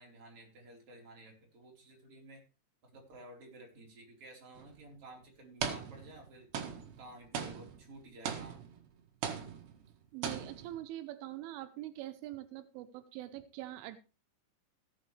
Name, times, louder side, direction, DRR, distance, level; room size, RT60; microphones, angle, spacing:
voice 1, 0.0-2.4 2.8-6.5 7.0-8.6, right 1 dB, 30° right, 0 dB, 4.5 m, -53 dB
sound 1, 4.5-4.7 5.6-6.3 6.5-8.9 9.2-9.9 10.2-10.8, right 7 dB, 65° right, 3.6 m, -39 dB
voice 2, 10.1-14.0, right 14 dB, 85° right, 10 dB, 3.3 m, -44 dB
17.0 x 8.7 x 3.3 m, 0.33 s
omnidirectional pair, 5.5 m